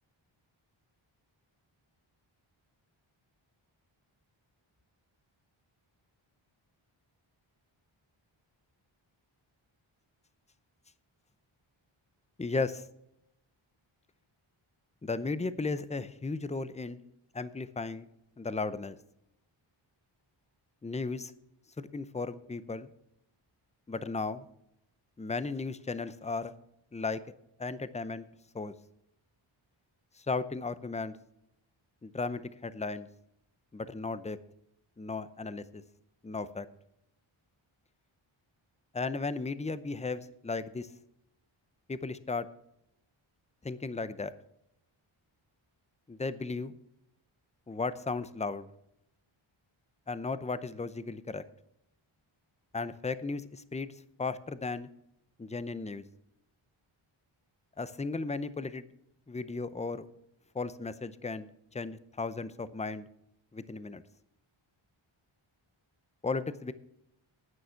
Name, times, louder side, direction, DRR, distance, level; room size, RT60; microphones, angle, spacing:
voice 1, 12.4-12.8 15.0-17.0 17.3-18.1 18.4-19.0 20.8-21.3 21.8-22.9 23.9-24.5 25.2-26.5 26.9-27.2 27.6-28.2 28.5-28.7 30.2-31.1 32.0-33.1 33.7-34.4 35.0-35.8 36.2-36.7 38.9-40.9 41.9-42.5 43.6-44.3 46.1-46.7 47.7-48.7 50.1-51.4 52.7-53.9 54.2-54.9 55.4-56.0 57.8-58.8 59.3-60.1 60.5-63.1 63.5-64.0 66.2-66.7, left 3 dB, 15° left, 14 dB, 0.6 m, -35 dB
11.0 x 9.3 x 5.7 m, 0.79 s
wide cardioid pair, 125°, 50 cm